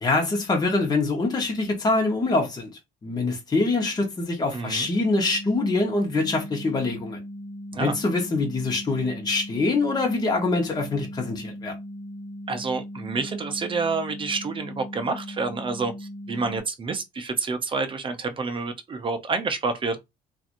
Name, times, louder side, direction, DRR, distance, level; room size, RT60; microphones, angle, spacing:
voice 1, 0.0-2.7 3.0-7.2 7.8-11.7, left 3 dB, 25° left, 1.0 m, -24 dB
voice 2, 4.5-4.9 7.7-8.0 12.5-20.0, right 4 dB, 30° right, 0.6 m, -28 dB
sound 1, 4.9-16.6, equal, 5° right, 1.5 m, -38 dB
3.0 x 2.5 x 2.5 m
cardioid pair, 110°, 17 cm